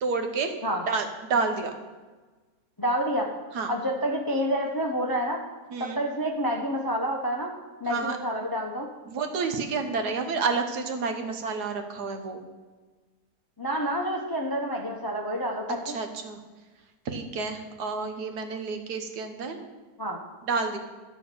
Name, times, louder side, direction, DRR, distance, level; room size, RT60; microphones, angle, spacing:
voice 1, 0.0-0.6 0.9-1.7 3.5-3.7 5.7-6.0 7.8-8.2 9.0-12.4 15.8-16.4 17.0-19.6 20.5-20.8, right 4 dB, 75° right, 6 dB, 1.5 m, -29 dB
voice 2, 2.8-3.3 3.7-5.4 5.8-7.5 7.8-8.9 13.6-15.8 20.0-20.2, equal, 20° left, 1 dB, 0.5 m, -28 dB
12.5 x 4.4 x 6.7 m, 1.3 s
omnidirectional pair, 1.8 m